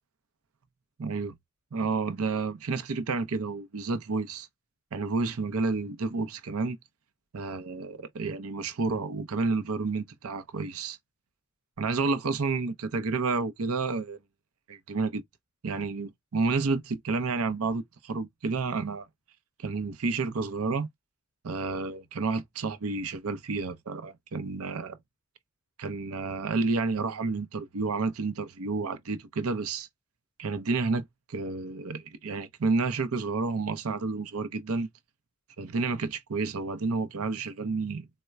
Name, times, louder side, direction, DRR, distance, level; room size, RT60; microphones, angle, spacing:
voice 1, 1.0-1.3 1.7-4.5 4.9-6.8 7.3-11.0 11.8-14.2 14.7-15.2 15.6-19.1 19.6-20.9 21.4-25.0 25.8-29.9 30.4-34.9 35.6-38.1, right 4 dB, 80° right, 0.6 m, -30 dB
4.2 x 2.1 x 2.3 m
head